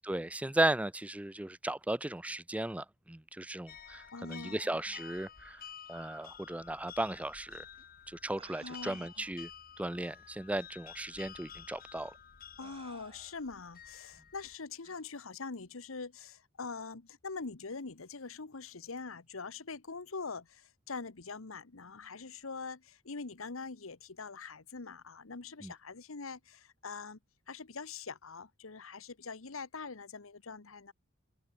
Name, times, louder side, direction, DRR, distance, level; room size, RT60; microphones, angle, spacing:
voice 1, 0.0-5.6 5.9-7.7 8.1-9.5 9.8-12.1 25.6-25.7, right 1 dB, 5° right, 0.4 m, -35 dB
sound 1, 3.7-14.6, left 8 dB, 45° left, 1.6 m, -52 dB
voice 2, 4.1-5.1 8.6-9.2 12.6-27.2 27.5-30.9, left 4 dB, 80° left, 1.2 m, -44 dB
sound 2, 7.7-7.8 8.4-9.3 10.2-10.3 11.1-11.3 12.0-12.2 12.6-13.6 14.8-15.0, right 4 dB, 30° right, 7.1 m, -57 dB
head